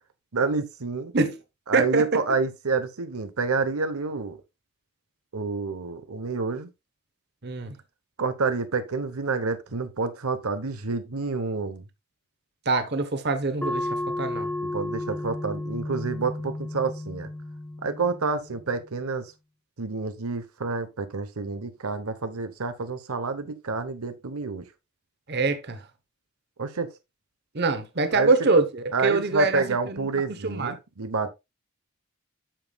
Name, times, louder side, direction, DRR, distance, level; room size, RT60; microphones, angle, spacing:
voice 1, 0.3-1.1 1.7-4.4 5.3-6.7 8.2-11.8 14.6-17.3 17.8-19.3 19.8-24.7 26.6-26.9 28.1-28.3 28.9-31.3, right 4 dB, 90° right, 0.9 m, -28 dB
voice 2, 1.7-2.0 7.4-7.7 12.7-14.5 25.3-25.8 27.5-30.1 30.4-30.8, right 3 dB, 50° right, 1.0 m, -24 dB
sound 1, 13.6-18.7, left 1 dB, 5° left, 0.4 m, -33 dB
8.8 x 7.2 x 2.3 m
head